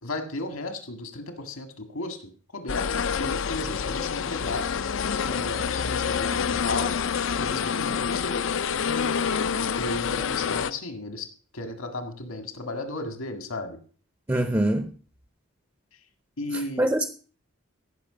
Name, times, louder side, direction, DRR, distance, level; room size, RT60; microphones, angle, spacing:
voice 1, 0.0-2.2 2.5-4.7 5.2-6.9 7.3-8.4 9.7-11.3 11.5-13.8 16.4-16.9, left 2 dB, 75° left, 1.9 m, -34 dB
sound 1, 2.7-10.7, left 6 dB, 60° left, 0.5 m, -27 dB
voice 2, 14.3-14.9 16.5-17.0, right 1 dB, 15° right, 0.6 m, -24 dB
15.5 x 6.1 x 5.0 m
head